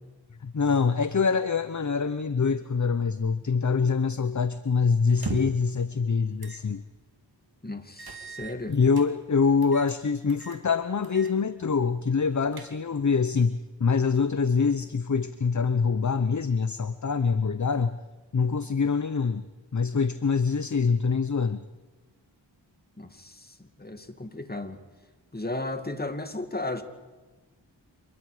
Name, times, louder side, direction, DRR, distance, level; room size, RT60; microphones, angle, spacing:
voice 1, 0.4-6.8 8.7-18.0 18.3-19.4 19.7-21.7, left 5 dB, 40° left, 13 dB, 0.9 m, -25 dB
sound 1, 5.1-5.7 6.4-6.6 7.0-7.1 8.0-9.1 9.6-10.0 10.3-10.6 11.0-11.4 11.7-11.8 12.3-13.0, right 3 dB, 55° right, 2.8 m, -38 dB
voice 2, 7.6-8.8 23.0-23.5 23.8-24.8 25.3-26.8, left 2 dB, 20° left, 7 dB, 2.3 m, -34 dB
27.0 x 21.5 x 5.1 m, 1.3 s
cardioid pair, 40°, 44 cm